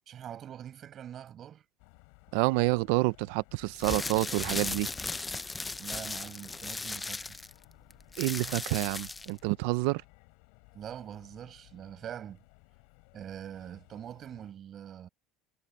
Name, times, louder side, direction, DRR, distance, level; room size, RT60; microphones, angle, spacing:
voice 1, 0.1-1.6 5.8-7.4 10.7-12.4 13.1-15.1, right 10 dB, 35° right, 5.3 m, -44 dB
sound 1, 1.8-14.5, left 35 dB, 80° left, 5.1 m, -59 dB
voice 2, 2.3-4.9 8.2-10.0, right 23 dB, 80° right, 0.4 m, -28 dB
sound 2, 3.7-9.4, left 3 dB, 10° left, 0.5 m, -36 dB
cardioid pair, 160°, 0 cm